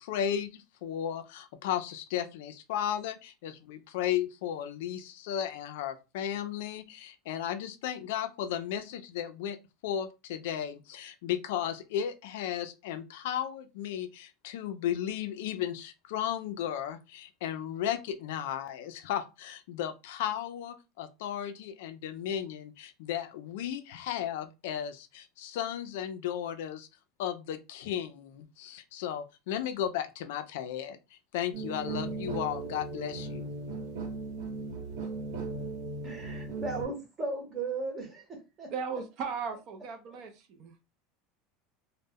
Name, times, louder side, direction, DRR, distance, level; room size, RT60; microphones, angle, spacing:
voice 1, 0.0-9.6 9.8-26.9 27.2-33.5, left 10 dB, 75° left, 0.3 m, -35 dB
sound 1, 31.5-36.8, right 3 dB, 75° right, 1.0 m, -37 dB
voice 2, 36.0-38.7, right 3 dB, 20° right, 0.8 m, -36 dB
voice 3, 38.7-40.7, right 5 dB, 40° right, 0.4 m, -37 dB
2.0 x 2.0 x 3.4 m
supercardioid pair, 170°, 0 cm